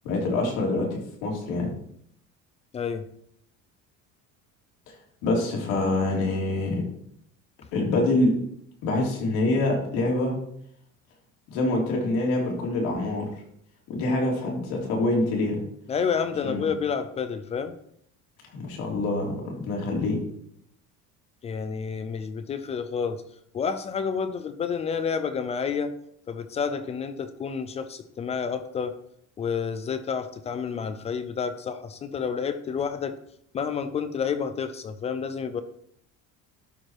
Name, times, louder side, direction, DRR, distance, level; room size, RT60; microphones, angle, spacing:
voice 1, 0.0-1.7 5.2-6.8 7.7-8.3 8.8-10.4 11.5-13.2 13.9-15.6 16.4-16.7 18.5-20.2, left 2 dB, 90° left, -1 dB, 3.3 m, -25 dB
voice 2, 2.7-3.1 15.9-17.7 21.4-23.2 23.5-25.9 26.3-29.0 29.4-33.2 33.5-35.6, left 6 dB, 20° left, 11 dB, 0.4 m, -29 dB
12.0 x 4.8 x 4.5 m, 0.71 s
cardioid pair, 180°, 30 cm